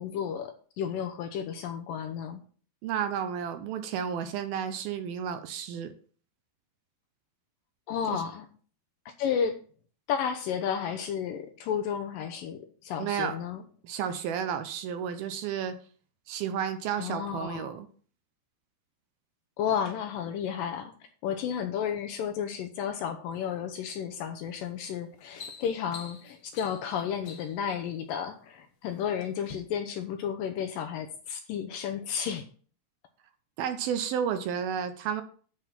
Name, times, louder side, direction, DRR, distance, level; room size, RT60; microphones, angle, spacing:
voice 1, 0.0-2.4 7.9-8.5 9.2-9.6 10.1-13.6 17.0-17.7 19.6-20.9 21.2-32.4, left 8 dB, 75° left, 7 dB, 2.1 m, -32 dB
voice 2, 2.8-5.9 8.1-8.2 13.0-13.4 13.8-15.7 16.3-17.9 33.6-35.2, right 8 dB, 75° right, 9 dB, 2.5 m, -32 dB
sound 1, 24.4-24.7 25.0-27.7 28.5-29.0 29.4-29.6, left 6 dB, 55° left, 1.8 m, -46 dB
11.5 x 4.8 x 5.8 m, 0.43 s
omnidirectional pair, 4.7 m